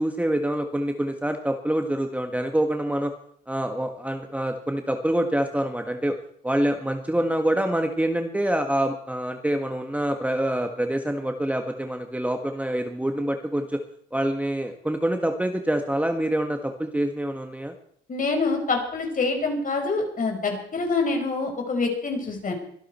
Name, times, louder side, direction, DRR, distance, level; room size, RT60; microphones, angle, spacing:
voice 1, 0.0-3.1 3.5-6.2 6.4-13.8 14.1-17.7, right 1 dB, 5° right, 5 dB, 1.7 m, -26 dB
voice 2, 18.1-22.5, left 3 dB, 45° left, 3 dB, 5.2 m, -26 dB
24.0 x 12.0 x 4.5 m, 0.64 s
cardioid pair, 90°, 20 cm